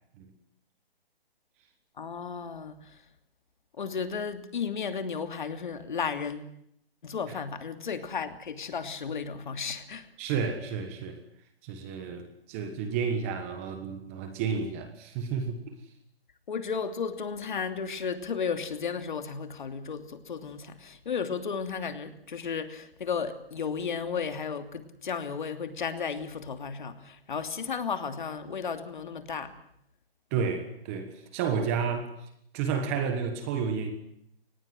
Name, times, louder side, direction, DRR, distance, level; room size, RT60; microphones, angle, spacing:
voice 1, 2.0-2.9 3.8-6.5 7.0-10.1 16.5-29.6, left 6 dB, 50° left, 8 dB, 2.8 m, -34 dB
voice 2, 10.2-11.2 11.6-15.6 30.3-32.1 32.5-33.9, right 6 dB, 15° right, 8 dB, 1.4 m, -31 dB
25.0 x 19.5 x 7.8 m, 0.72 s
hypercardioid pair, 170°, 31 cm